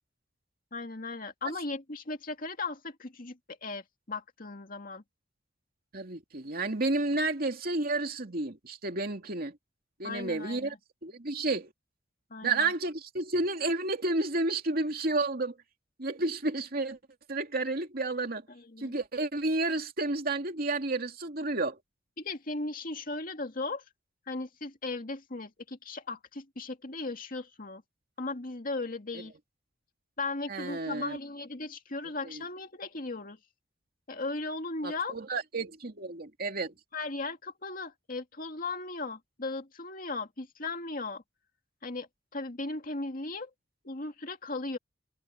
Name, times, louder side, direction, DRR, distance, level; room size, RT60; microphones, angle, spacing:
voice 1, 0.7-5.0 10.0-10.8 12.3-12.7 18.5-19.0 22.2-23.8 24.3-27.8 28.2-29.3 30.2-33.4 34.1-35.2 36.9-41.2 41.8-43.5 43.8-44.8, left 3 dB, 50° left, 2.2 m, -37 dB
voice 2, 5.9-9.6 10.0-10.7 11.0-11.7 12.4-15.6 16.0-17.0 17.3-18.5 18.8-21.8 30.5-31.2 32.2-32.4 34.8-36.7, right 2 dB, 55° right, 2.6 m, -31 dB
head